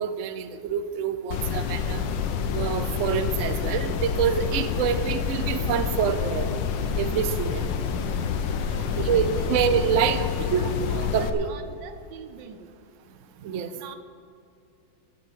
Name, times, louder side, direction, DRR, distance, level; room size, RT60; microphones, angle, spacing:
voice 1, 0.0-2.0 2.5-6.5 6.9-7.7 9.0-10.2 10.5-10.7 11.1-11.5 13.4-13.7, right 8 dB, 60° right, 10 dB, 0.8 m, -26 dB
sound 1, 1.3-11.3, left 6 dB, 85° left, 1.5 m, -28 dB
voice 2, 8.6-9.6 10.1-12.7 13.7-14.0, right 8 dB, 90° right, 10 dB, 1.5 m, -43 dB
12.5 x 6.9 x 8.4 m, 2.5 s
omnidirectional pair, 1.9 m